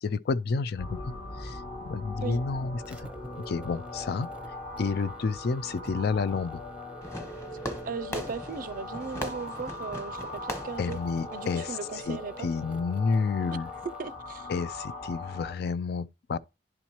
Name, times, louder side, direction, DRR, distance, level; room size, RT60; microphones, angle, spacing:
voice 1, 0.0-3.0 3.5-4.3 4.8-6.6 10.8-11.8 12.1-13.7 14.5-16.4, left 4 dB, 60° left, 0.4 m, -30 dB
sound 1, 0.8-15.5, left 2 dB, 35° left, 0.9 m, -40 dB
sound 2, 2.8-14.1, equal, 5° right, 0.6 m, -51 dB
Fireworks, 7.0-12.0, equal, 15° left, 1.2 m, -40 dB
voice 2, 7.8-11.0 11.3-12.5 13.5-13.6 14.0-14.5, right 5 dB, 50° right, 0.4 m, -37 dB
11.0 x 4.3 x 3.0 m
head